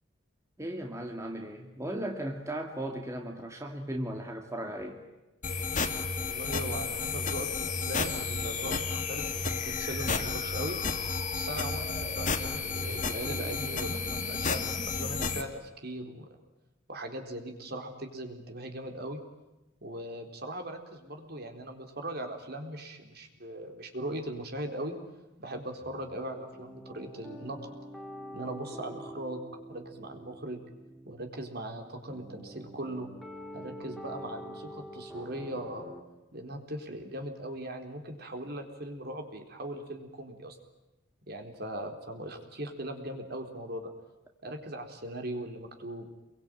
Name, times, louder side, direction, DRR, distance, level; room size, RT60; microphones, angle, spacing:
voice 1, 0.6-5.0, right 1 dB, 15° right, 2 dB, 2.4 m, -36 dB
sound 1, 5.4-15.4, left 4 dB, 40° left, 2.5 m, -32 dB
voice 2, 6.2-10.8 11.3-16.4 16.9-19.2 19.8-25.0 25.4-27.6 28.3-30.6 31.1-33.1 33.5-35.9 36.3-40.6 41.3-43.9 44.4-46.1, right 1 dB, 55° right, 4 dB, 4.1 m, -39 dB
sound 2, 25.8-36.0, equal, ahead, 3.3 m, -46 dB
28.0 x 23.5 x 9.2 m, 0.98 s
head